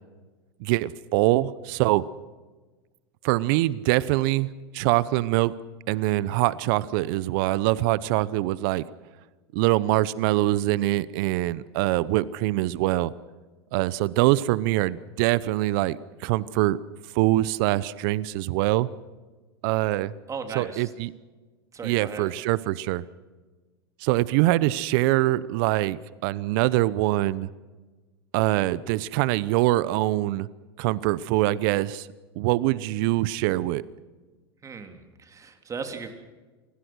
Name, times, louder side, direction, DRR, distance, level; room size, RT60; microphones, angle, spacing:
voice 1, 0.6-2.0 3.2-4.5 4.7-5.5 5.9-8.8 9.5-13.1 13.7-16.8 17.1-18.9 19.6-20.1 20.5-21.1 21.8-23.0 24.0-27.5 28.3-30.5 30.8-32.1 32.4-33.8, right 17 dB, 55° right, 20 dB, 0.8 m, -24 dB
voice 2, 20.3-20.9 21.7-22.2 34.6-36.1, right 5 dB, 25° right, 6 dB, 3.4 m, -36 dB
28.0 x 20.0 x 6.3 m, 1.3 s
hypercardioid pair, 95°, 13 cm